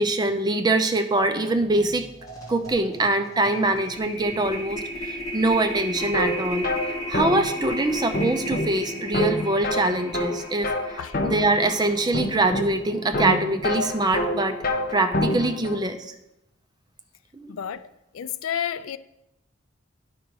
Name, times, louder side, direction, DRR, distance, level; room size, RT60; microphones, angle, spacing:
voice 1, 0.0-2.1 2.5-10.7 11.2-14.6 14.9-16.1 17.3-17.6, right 2 dB, 20° right, 0.5 m, -24 dB
sound 1, 1.7-1.9 2.2-12.4, left 1 dB, 15° left, 1.9 m, -35 dB
sound 2, 6.0-15.8, left 1 dB, 40° left, 0.7 m, -28 dB
voice 2, 17.5-17.9 18.1-19.0, left 9 dB, 75° left, 0.4 m, -30 dB
10.5 x 5.0 x 4.7 m
head